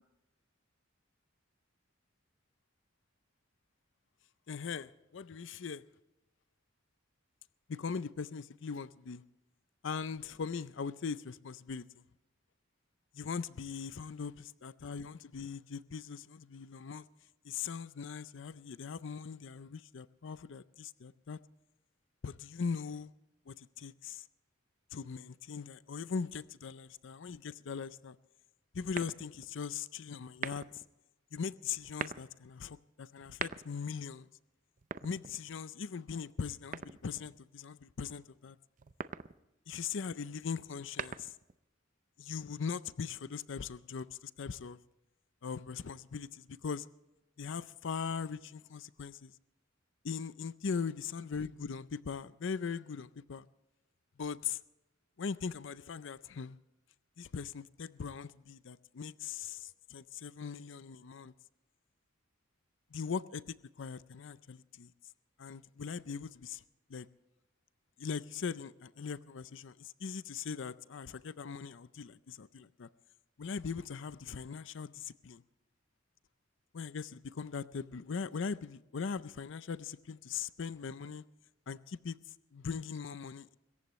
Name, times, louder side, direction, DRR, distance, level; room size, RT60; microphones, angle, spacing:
voice 1, 4.5-5.8 7.7-9.2 9.8-11.8 13.1-17.1 17.4-21.4 22.2-23.1 23.5-24.2 24.9-28.2 28.7-30.6 31.3-34.3 35.0-38.6 39.7-41.4 42.2-44.8 45.4-46.9 47.4-49.3 50.0-53.5 54.2-54.6 55.2-56.6 57.2-61.3 62.9-64.9 65.4-66.6 66.9-67.1 68.0-72.9 73.4-75.4 76.7-81.2 81.7-82.2 82.5-83.6, left 6 dB, 65° left, 0.5 m, -40 dB
sound 1, 28.9-29.5 30.3-30.9 31.8-32.3 33.2-33.9 34.8-35.7 36.7-37.3 38.8-39.4 40.7-41.5, right 6 dB, 40° right, 0.6 m, -42 dB
25.0 x 14.5 x 3.1 m
head